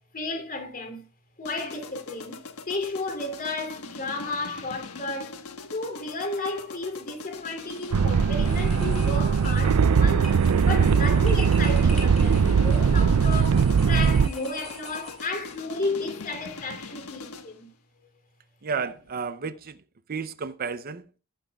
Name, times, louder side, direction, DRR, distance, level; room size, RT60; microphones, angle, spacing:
voice 1, 0.1-1.0 1.4-2.4 2.7-5.4 5.7-10.4 10.7-17.7, left 2 dB, 40° left, 2.9 m, -33 dB
sound 1, 1.4-17.6, left 4 dB, 70° left, 1.4 m, -42 dB
sound 2, 7.6-8.0 8.4-15.6, left 1 dB, ahead, 6.7 m, -45 dB
sound 3, 7.9-14.3, right 6 dB, 85° right, 0.5 m, -20 dB
voice 2, 18.6-19.8 20.1-21.2, right 5 dB, 40° right, 0.6 m, -32 dB
17.0 x 8.9 x 2.3 m
head